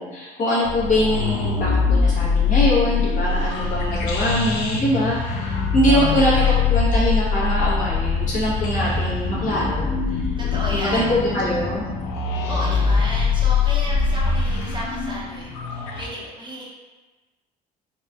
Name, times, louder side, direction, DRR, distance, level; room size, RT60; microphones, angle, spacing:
voice 1, 0.0-10.2 10.7-11.9, equal, 50° left, -7 dB, 1.4 m, -23 dB
sound 1, 0.6-16.1, left 5 dB, 85° left, 0.5 m, -22 dB
voice 2, 5.9-6.6 10.4-11.1 12.5-16.6, equal, 30° right, -5 dB, 0.9 m, -32 dB
4.2 x 2.3 x 2.6 m, 1.2 s
cardioid pair, 95°, 17 cm